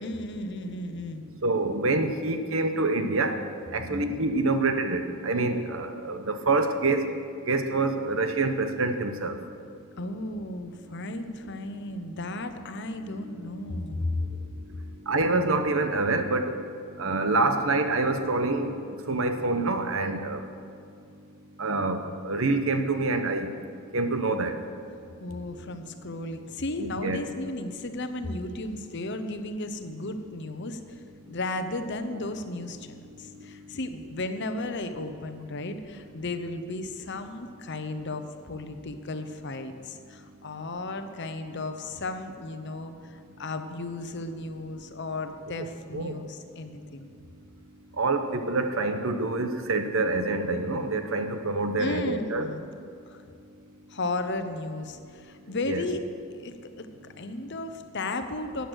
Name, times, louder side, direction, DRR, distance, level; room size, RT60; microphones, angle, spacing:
voice 1, 0.0-1.2 3.8-4.1 10.0-14.2 25.2-47.1 51.8-52.7 53.1-53.2 53.9-56.0 56.4-58.7, left 2 dB, 50° left, 8 dB, 0.8 m, -34 dB
voice 2, 1.4-7.2 7.4-9.4 15.1-16.7 17.0-20.5 21.6-23.5 23.9-24.6 26.8-27.2 45.5-45.7 45.9-46.2 48.0-52.5 55.7-55.8, right 3 dB, 65° right, 7 dB, 1.0 m, -26 dB
14.5 x 9.4 x 6.3 m, 2.3 s
head